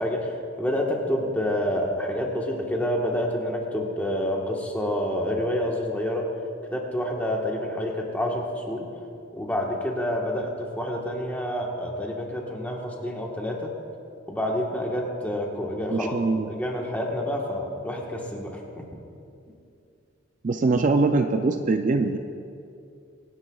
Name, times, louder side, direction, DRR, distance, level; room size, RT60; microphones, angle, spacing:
voice 1, 0.0-6.3 6.6-8.9 9.3-10.5 10.8-13.7 14.3-16.2 16.4-18.8, left 1 dB, 10° left, -1 dB, 1.3 m, -28 dB
voice 2, 15.9-16.5 20.4-22.2, right 3 dB, 40° right, 6 dB, 0.4 m, -22 dB
24.5 x 9.8 x 2.3 m, 2.5 s
head